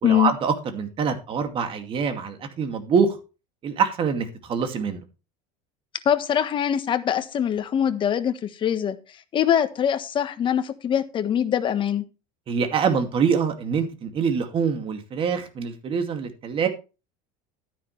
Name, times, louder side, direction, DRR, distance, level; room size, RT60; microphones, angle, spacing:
voice 1, 0.0-3.2 3.6-5.0 12.5-16.7, right 6 dB, 35° right, 6 dB, 2.4 m, -25 dB
voice 2, 6.0-9.0 9.3-12.0, left 9 dB, 30° left, 9 dB, 1.4 m, -23 dB
12.0 x 10.0 x 3.3 m, 0.31 s
cardioid pair, 145°, 16 cm